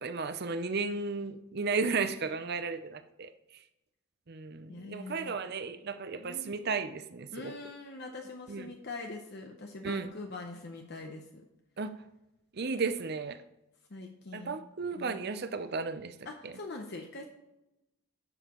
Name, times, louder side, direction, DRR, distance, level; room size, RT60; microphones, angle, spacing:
voice 1, 0.0-3.6 4.3-7.7 8.5-8.7 9.8-10.1 11.8-11.9 12.5-13.4 14.3-16.2 16.4-16.5, right 4 dB, 50° right, 11 dB, 0.6 m, -34 dB
voice 2, 4.7-5.4 6.2-6.5 7.3-11.5 13.9-14.6 15.0-15.2 16.3-17.2, left 3 dB, 50° left, 3 dB, 0.8 m, -43 dB
11.0 x 7.2 x 3.0 m, 0.92 s
head